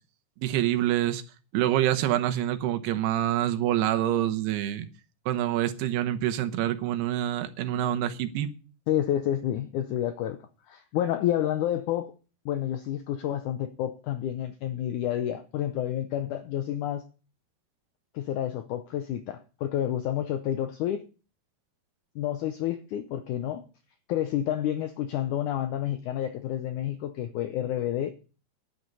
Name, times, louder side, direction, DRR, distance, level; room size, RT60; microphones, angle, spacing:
voice 1, 0.4-1.2 1.5-4.9 5.3-8.5, right 12 dB, 90° right, 3.1 m, -26 dB
voice 2, 8.9-10.4 10.7-12.1 12.4-17.0 18.1-21.0 22.1-23.6 24.1-28.1, left 11 dB, 90° left, 1.7 m, -29 dB
11.5 x 10.5 x 5.4 m
omnidirectional pair, 4.5 m